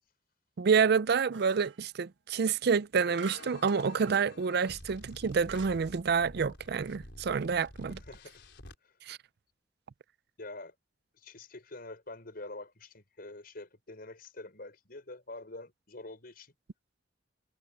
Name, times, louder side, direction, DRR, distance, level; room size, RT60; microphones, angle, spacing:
voice 1, 0.6-8.0 9.1-9.2, right 5 dB, 60° right, 0.5 m, -28 dB
sound 1, 1.3-1.8 3.2-4.3 4.9-5.0 5.5-5.8, right 7 dB, 85° right, 1.6 m, -45 dB
sound 2, 3.0-8.8, left 1 dB, 75° left, 5.0 m, -50 dB
voice 2, 7.9-8.4 8.8-9.0 10.4-10.7 11.1-16.5, left 2 dB, 55° left, 5.3 m, -46 dB
head